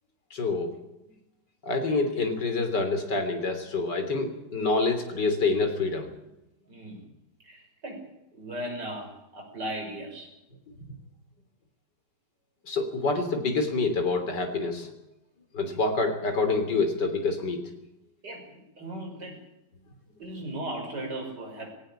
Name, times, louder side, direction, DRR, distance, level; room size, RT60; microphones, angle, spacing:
voice 1, 0.3-0.7 1.6-6.1 12.7-14.9 15.5-17.6, left 3 dB, 85° left, 7 dB, 3.9 m, -27 dB
voice 2, 6.7-7.1 7.4-8.0 8.3-10.3 18.2-18.5 18.8-19.4 20.2-21.7, right 1 dB, 80° right, 1 dB, 6.6 m, -37 dB
18.5 x 17.5 x 8.8 m, 0.90 s
omnidirectional pair, 1.8 m